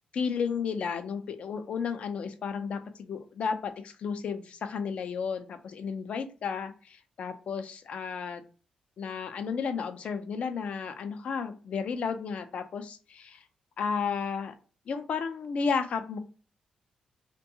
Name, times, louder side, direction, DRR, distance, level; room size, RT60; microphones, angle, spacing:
voice 1, 0.1-8.4 9.0-13.4 13.8-14.5 14.9-16.2, left 6 dB, 55° left, 8 dB, 0.4 m, -33 dB
2.6 x 2.2 x 2.7 m, 0.37 s
cardioid pair, 115°, 2 cm